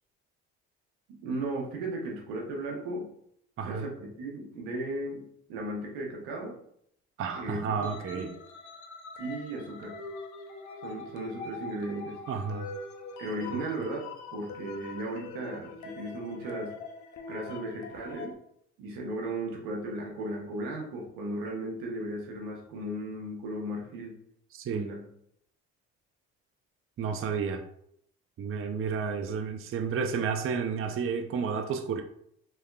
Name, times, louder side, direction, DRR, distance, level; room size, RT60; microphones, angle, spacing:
voice 1, 1.2-3.1 3.6-5.2 5.5-6.5 7.3-8.3 9.2-10.0 10.8-12.2 13.2-14.0 14.3-16.7 17.3-18.4 18.8-24.2 24.7-25.0, right 1 dB, 90° right, -1 dB, 1.0 m, -36 dB
voice 2, 7.2-8.3 12.3-12.7 13.5-13.6 24.5-24.9 27.0-27.6 28.4-32.0, right 6 dB, 40° right, 5 dB, 0.5 m, -31 dB
sound 1, 7.7-18.3, left 3 dB, 60° left, 0.6 m, -43 dB
3.4 x 3.2 x 2.3 m, 0.70 s
supercardioid pair, 60°, 32 cm